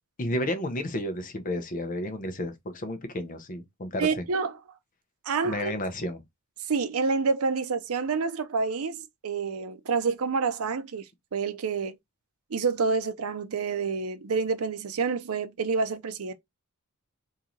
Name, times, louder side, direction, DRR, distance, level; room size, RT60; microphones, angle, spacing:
voice 1, 0.2-4.2 5.4-6.2, left 1 dB, 40° left, 0.7 m, -32 dB
voice 2, 4.0-4.5 5.3-5.7 6.7-11.0 11.3-12.0 12.5-16.3, right 4 dB, 80° right, 0.6 m, -28 dB
3.0 x 2.8 x 3.7 m
head